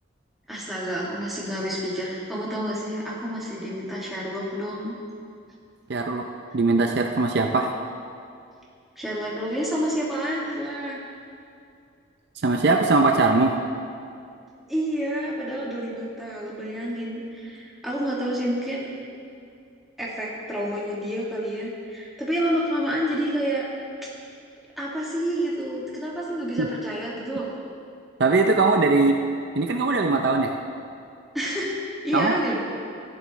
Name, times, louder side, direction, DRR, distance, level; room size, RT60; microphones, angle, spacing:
voice 1, 0.5-4.9 9.0-11.0 14.7-18.9 20.0-23.7 24.8-27.5 31.3-32.6, equal, ahead, -7 dB, 2.0 m, -29 dB
voice 2, 5.9-6.2 6.5-7.7 12.4-13.5 26.6-26.7 28.2-29.2 29.6-30.5 32.1-32.4, right 3 dB, 55° right, 3 dB, 0.5 m, -20 dB
14.0 x 11.0 x 3.2 m, 2.4 s
head